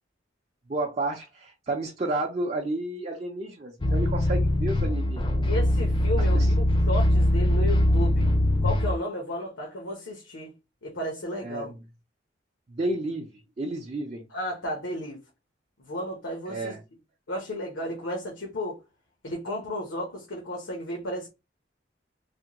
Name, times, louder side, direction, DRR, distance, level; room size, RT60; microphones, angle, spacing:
voice 1, 0.7-5.3 6.3-6.5 11.4-11.8 12.7-14.3 16.4-16.8, right 2 dB, 35° right, 0.5 m, -31 dB
sound 1, 3.8-8.9, left 1 dB, 25° left, 0.5 m, -22 dB
voice 2, 5.5-8.3 8.6-10.5 10.8-11.7 14.3-15.2 15.8-16.7 17.3-18.8 19.2-21.3, equal, 80° left, 0.9 m, -33 dB
3.4 x 2.2 x 2.8 m
head